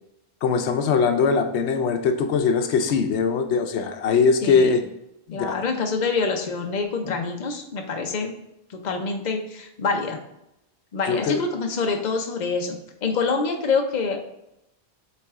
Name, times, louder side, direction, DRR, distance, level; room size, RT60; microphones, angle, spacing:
voice 1, 0.4-4.8 5.3-5.6 11.0-11.4, left 5 dB, 85° left, 7 dB, 0.9 m, -21 dB
voice 2, 5.3-8.3 8.7-10.2 10.9-14.2, left 4 dB, 45° left, 4 dB, 0.8 m, -26 dB
7.7 x 3.4 x 3.6 m, 0.84 s
omnidirectional pair, 1.1 m